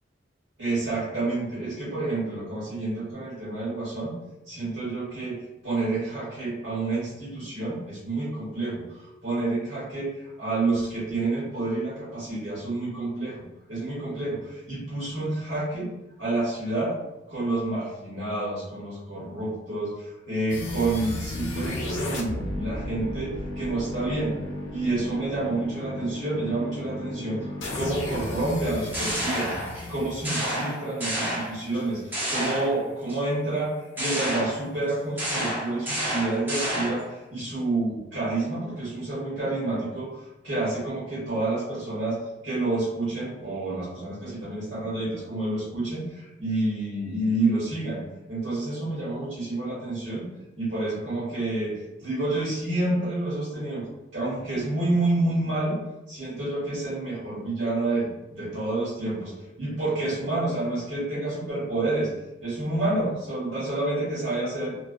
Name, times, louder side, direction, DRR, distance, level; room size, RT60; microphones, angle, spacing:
voice 1, 0.6-4.1 4.5-5.4 5.6-13.4 13.7-15.9 16.2-16.9 17.3-24.4 24.7-29.5 29.9-42.2 42.4-48.0 48.3-50.2 50.6-53.9 54.1-55.8 56.1-59.3 59.6-62.1 62.4-64.7, right 2 dB, 65° right, -9 dB, 1.1 m, -29 dB
sound 1, 20.5-31.5, left 1 dB, 75° left, 0.5 m, -34 dB
sound 2, 28.6-29.9 30.2-31.8 32.1-33.2 34.0-37.1, equal, 10° right, 0.4 m, -30 dB
2.3 x 2.3 x 2.4 m, 1.0 s
head